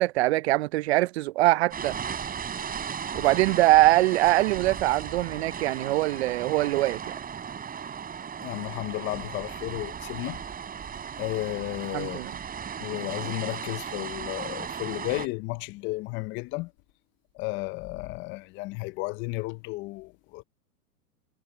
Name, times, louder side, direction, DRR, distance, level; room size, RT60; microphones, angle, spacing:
voice 1, 0.0-1.9 3.1-7.0 11.9-12.3, right 17 dB, 45° right, 0.5 m, -23 dB
sound 1, 1.7-15.3, right 7 dB, 20° right, 5.2 m, -36 dB
voice 2, 8.4-10.4 11.2-12.2 12.8-16.7 17.4-20.4, left 23 dB, 25° left, 0.6 m, -33 dB
hypercardioid pair, 120°, 48 cm